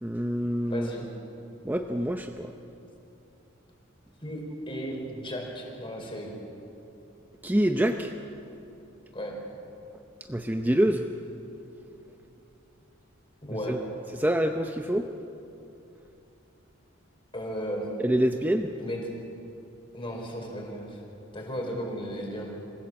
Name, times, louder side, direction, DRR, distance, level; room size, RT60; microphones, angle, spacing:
voice 1, 0.0-0.9 1.6-2.5 7.4-8.1 10.3-11.0 13.7-13.8 14.2-15.0 18.0-18.7, right 1 dB, 10° right, 5 dB, 0.6 m, -26 dB
voice 2, 0.7-1.0 4.2-6.3 9.1-9.4 13.4-13.8 17.3-17.9 18.8-19.0 19.9-21.0 21.3-22.5, equal, 25° left, 0 dB, 4.7 m, -35 dB
26.5 x 16.0 x 7.6 m, 2.8 s
head